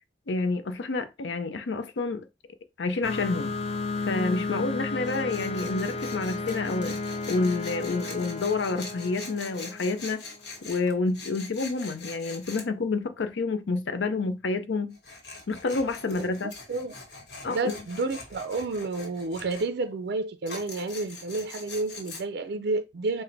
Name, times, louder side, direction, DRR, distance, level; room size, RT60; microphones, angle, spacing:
voice 1, 0.3-2.3 2.8-3.5 4.0-7.0 7.3-10.2 10.6-15.0 15.5-16.5 17.4-17.7, left 3 dB, 90° left, 0.5 m, -29 dB
sound 1, 3.0-10.4, left 3 dB, 35° left, 0.4 m, -33 dB
Tools, 5.0-12.7 14.9-19.7 20.5-22.2, left 3 dB, 70° left, 1.1 m, -43 dB
voice 2, 16.2-16.9 17.5-23.2, right 3 dB, 60° right, 0.4 m, -30 dB
3.9 x 2.1 x 4.3 m
head